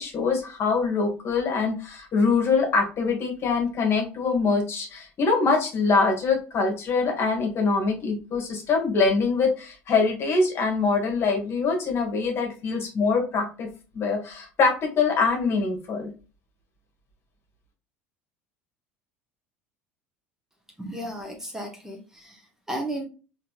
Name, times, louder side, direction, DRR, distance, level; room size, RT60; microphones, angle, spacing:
voice 1, 0.0-13.7 13.9-16.1, left 4 dB, 40° left, 3 dB, 1.4 m, -24 dB
voice 2, 20.8-23.0, right 1 dB, 10° right, 2 dB, 0.9 m, -34 dB
4.2 x 2.7 x 2.3 m, 0.34 s
figure-of-eight pair, 65°, 7 cm